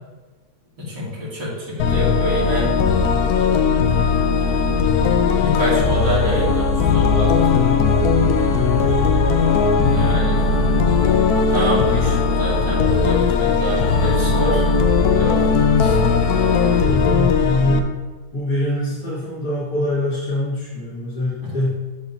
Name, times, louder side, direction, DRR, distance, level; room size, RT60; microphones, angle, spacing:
voice 1, 0.8-2.7 5.4-7.7 9.8-10.4 11.5-14.6 15.2-15.4 15.8-16.0 21.4-21.6, equal, 85° right, -7 dB, 3.3 m, -25 dB
sound 1, 1.8-17.8, left 5 dB, 70° left, 1.1 m, -18 dB
voice 2, 16.8-18.0 18.3-21.8, left 1 dB, 50° left, -10 dB, 2.2 m, -23 dB
13.0 x 4.9 x 2.7 m, 1.3 s
omnidirectional pair, 1.8 m